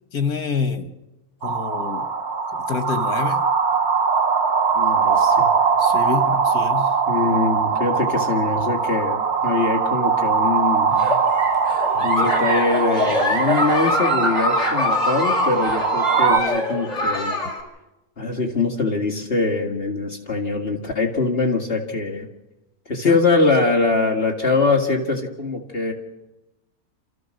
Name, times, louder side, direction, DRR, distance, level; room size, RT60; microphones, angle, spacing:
voice 1, 0.1-0.9 1.4-2.1 2.7-3.4 5.8-6.9 12.0-12.3 23.0-23.2, left 5 dB, 85° left, 9 dB, 1.8 m, -27 dB
sound 1, 1.4-16.4, right 5 dB, 50° right, 1.2 m, -21 dB
voice 2, 4.7-5.5 7.1-10.9 12.0-17.4 18.2-22.3 22.9-25.9, left 3 dB, 40° left, 1 dB, 2.1 m, -23 dB
Giggle, 10.9-17.6, left 1 dB, 25° left, 3.3 m, -24 dB
28.5 x 14.5 x 6.4 m, 1.0 s
omnidirectional pair, 1.6 m